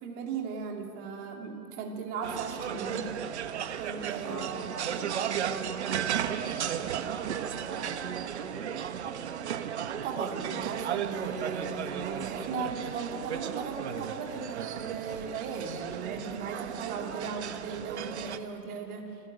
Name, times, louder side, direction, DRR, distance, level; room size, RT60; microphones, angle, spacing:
voice 1, 0.0-3.3 3.8-5.1 9.8-19.2, right 5 dB, 20° right, 2 dB, 2.8 m, -37 dB
sound 1, 2.2-18.4, right 9 dB, 40° right, 1.5 m, -35 dB
voice 2, 4.2-8.7, right 5 dB, 70° right, 3 dB, 2.5 m, -42 dB
28.0 x 21.0 x 8.9 m, 2.8 s
hypercardioid pair, 150°, 50 cm